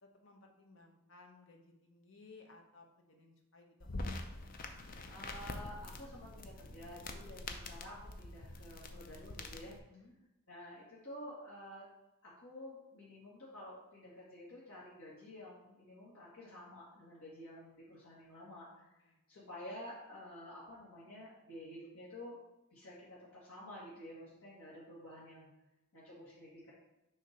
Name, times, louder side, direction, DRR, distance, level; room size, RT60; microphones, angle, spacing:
voice 1, 0.0-4.0 9.9-10.1 18.8-19.2, left 3 dB, 60° left, 2 dB, 0.9 m, -60 dB
sound 1, 3.8-9.8, left 2 dB, 40° left, 0.5 m, -45 dB
voice 2, 5.1-9.7 10.5-11.8 12.2-18.9 19.3-22.4 22.7-25.5 25.9-26.7, left 1 dB, 75° left, -8 dB, 1.6 m, -51 dB
6.6 x 2.9 x 5.1 m, 0.95 s
head